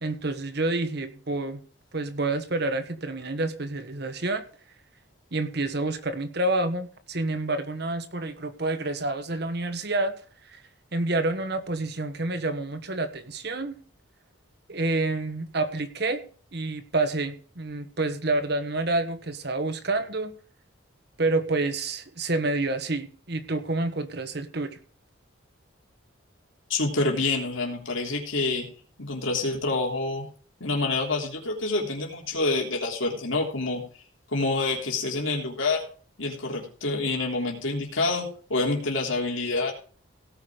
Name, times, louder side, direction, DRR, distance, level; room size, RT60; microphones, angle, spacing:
voice 1, 0.0-1.6 1.9-4.4 5.3-10.1 10.5-10.6 10.9-13.8 14.7-16.2 16.5-20.3 21.2-24.8, right 2 dB, 55° right, 10 dB, 1.3 m, -28 dB
voice 2, 26.7-28.7 29.0-30.2 30.6-33.8 34.3-35.8 36.2-39.7, left 3 dB, 80° left, 0 dB, 3.4 m, -27 dB
17.5 x 6.0 x 5.0 m, 0.42 s
head